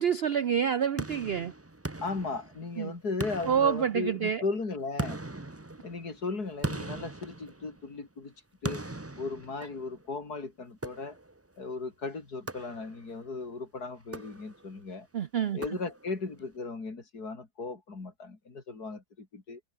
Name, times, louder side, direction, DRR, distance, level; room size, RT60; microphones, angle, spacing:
voice 1, 0.0-1.5 2.8-2.9 3.4-4.4 15.1-15.6, right 8 dB, 65° right, 0.6 m, -27 dB
sound 1, 1.0-2.8 3.2-4.4 5.0-8.0 8.6-10.1 10.8-11.5 12.5-13.2 14.0-14.8 15.6-16.3, right 2 dB, 10° right, 0.7 m, -39 dB
voice 2, 2.0-5.2 5.8-8.3 8.6-8.8 9.2-11.2 11.6-15.1 15.5-19.6, left 3 dB, 65° left, 4.0 m, -36 dB
omnidirectional pair, 1.8 m